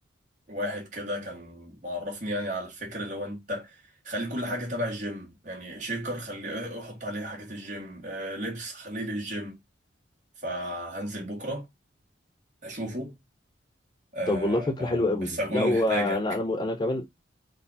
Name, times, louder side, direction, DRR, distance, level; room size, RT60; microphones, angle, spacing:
voice 1, 0.5-3.7 4.1-9.5 10.4-11.7 12.6-13.1 14.1-16.2, equal, 40° right, 1.6 m, -34 dB
voice 2, 14.3-17.1, left 1 dB, 20° left, 0.4 m, -26 dB
3.7 x 2.4 x 4.0 m
head